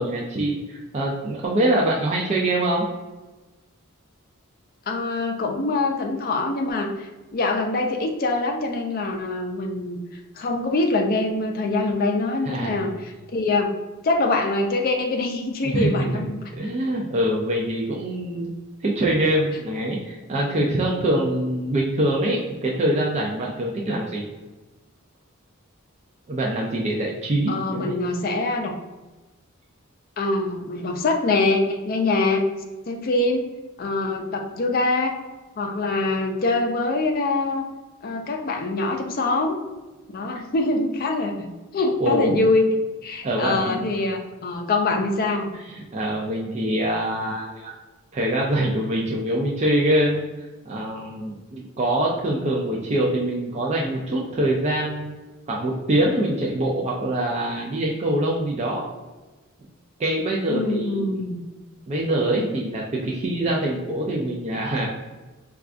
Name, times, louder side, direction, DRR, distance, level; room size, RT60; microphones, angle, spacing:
voice 1, 0.0-2.9 12.5-12.8 15.6-15.9 16.6-18.5 18.8-24.2 26.3-28.0 42.0-42.4 43.2-43.9 45.7-47.7 48.1-50.2 50.7-55.1 55.5-58.8 60.0-61.0 61.9-64.9, right 1 dB, 30° right, -3 dB, 0.4 m, -24 dB
voice 2, 4.9-10.0 10.4-13.7 14.0-16.4 27.5-28.7 30.2-32.4 32.9-33.5 33.8-35.1 35.6-37.7 38.0-39.6 40.1-41.5 41.7-42.7 43.0-45.5 60.5-61.4, left 2 dB, 45° left, 3 dB, 0.4 m, -24 dB
4.5 x 2.3 x 2.4 m, 1.2 s
head